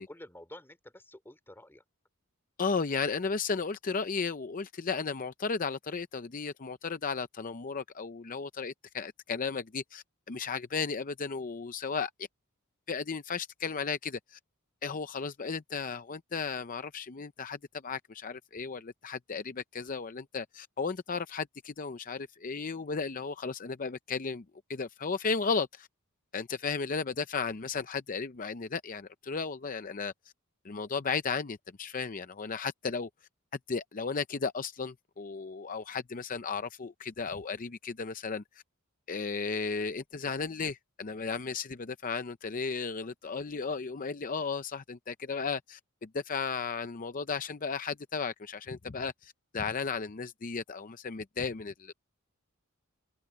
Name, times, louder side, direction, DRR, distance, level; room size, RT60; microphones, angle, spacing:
voice 1, 0.0-1.8, left 1 dB, 10° left, 3.3 m, -50 dB
voice 2, 2.6-12.1 12.9-14.4 14.8-24.4 24.7-25.9 26.3-30.1 30.6-33.1 33.7-38.4 39.1-51.9, left 5 dB, 40° left, 0.6 m, -34 dB
open air
head